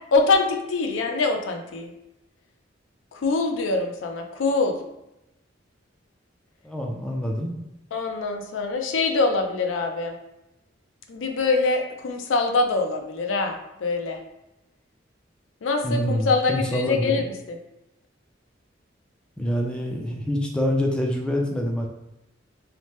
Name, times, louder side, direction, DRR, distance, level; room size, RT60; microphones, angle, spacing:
voice 1, 0.1-1.9 3.1-4.8 7.9-10.1 11.1-14.2 15.6-17.6, left 3 dB, 90° left, 4 dB, 0.4 m, -24 dB
voice 2, 6.6-7.5 15.8-17.2 19.4-21.9, equal, 5° left, -1 dB, 0.4 m, -26 dB
2.8 x 2.1 x 3.1 m, 0.92 s
head